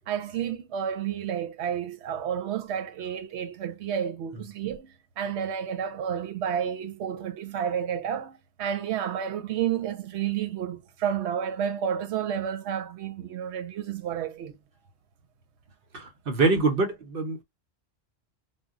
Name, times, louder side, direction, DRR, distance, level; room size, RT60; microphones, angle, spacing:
voice 1, 0.1-14.5, right 8 dB, 85° right, 0.9 m, -31 dB
voice 2, 15.9-17.4, right 3 dB, 60° right, 0.8 m, -25 dB
2.2 x 2.1 x 3.5 m
omnidirectional pair, 1.1 m